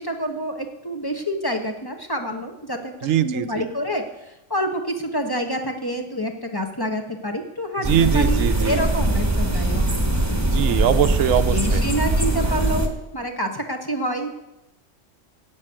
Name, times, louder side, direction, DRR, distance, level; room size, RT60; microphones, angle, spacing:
voice 1, 0.0-10.9 11.5-14.3, equal, 20° left, 4 dB, 1.3 m, -28 dB
voice 2, 3.0-3.7 7.9-8.8 10.5-11.8, right 10 dB, 80° right, 11 dB, 1.1 m, -21 dB
sound 1, 7.8-12.9, right 1 dB, 15° right, 1.4 m, -21 dB
12.5 x 8.2 x 8.8 m, 0.93 s
omnidirectional pair, 1.3 m